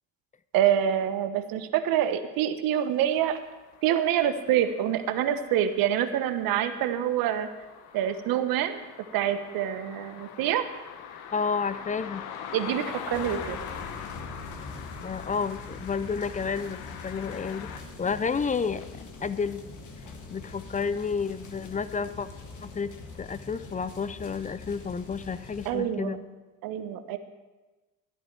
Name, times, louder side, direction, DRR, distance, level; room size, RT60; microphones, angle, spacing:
voice 1, 0.5-3.4 3.8-7.5 7.9-8.8 9.1-10.7 12.5-13.6 25.6-26.2 26.6-27.2, right 10 dB, 65° right, 10 dB, 1.0 m, -26 dB
sound 1, 3.1-17.8, left 8 dB, 70° left, 1.2 m, -43 dB
voice 2, 11.3-12.2 15.0-19.6 20.3-22.3 22.6-22.9 23.2-26.2, left 5 dB, 20° left, 15 dB, 0.6 m, -31 dB
sound 2, 13.1-25.7, left 3 dB, 50° left, 2.0 m, -43 dB
12.5 x 11.5 x 4.6 m, 1.2 s
hypercardioid pair, 60°, 38 cm